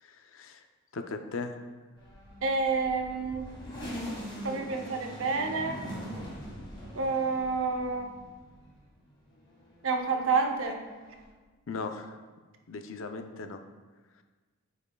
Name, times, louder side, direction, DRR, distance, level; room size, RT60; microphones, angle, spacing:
voice 1, 0.0-0.7 0.9-1.5 11.7-12.2 12.7-13.6, left 4 dB, 65° left, 7 dB, 0.5 m, -38 dB
sound 1, 2.0-8.9 9.3-11.3, equal, 20° left, 1.5 m, -42 dB
voice 2, 2.4-3.5 4.4-5.8 6.9-8.1 9.8-10.8, right 4 dB, 65° right, 4 dB, 0.7 m, -29 dB
9.1 x 5.4 x 2.3 m, 1.3 s
head